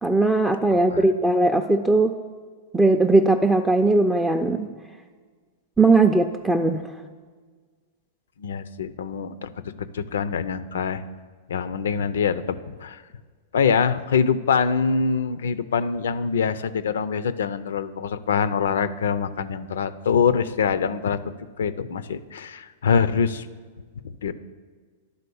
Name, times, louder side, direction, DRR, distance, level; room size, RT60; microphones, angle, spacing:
voice 1, 0.0-2.1 2.7-4.7 5.8-6.8, right 2 dB, 5° right, 4 dB, 0.3 m, -19 dB
voice 2, 0.7-1.1 8.4-11.0 11.5-13.0 13.5-23.5 24.2-24.3, left 6 dB, 85° left, 14 dB, 0.5 m, -24 dB
11.5 x 3.9 x 6.9 m, 1.5 s
hypercardioid pair, 135°, 0 cm